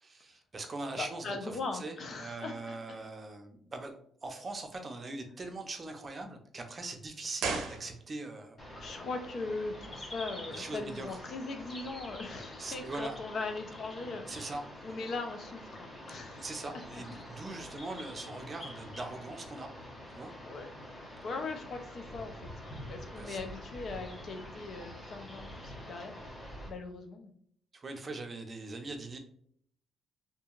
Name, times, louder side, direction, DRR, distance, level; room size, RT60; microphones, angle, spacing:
voice 1, 0.0-8.6 10.5-11.2 12.6-13.2 14.3-14.6 16.3-19.7 20.1-20.3 23.2-23.4 27.7-29.2, right 2 dB, 35° right, 4 dB, 0.5 m, -41 dB
voice 2, 0.9-2.8 8.8-14.5 14.8-16.5 20.4-20.7 21.2-22.5 22.9-26.4 26.7-27.3, left 3 dB, 55° left, 5 dB, 0.5 m, -40 dB
sound 1, 7.4-8.5 8.7-8.8, right 4 dB, 80° right, 0.6 m, -36 dB
sound 2, 8.6-26.7, left 1 dB, 35° left, 1.1 m, -46 dB
2.7 x 2.6 x 2.4 m, 0.64 s
cardioid pair, 90°, 0 cm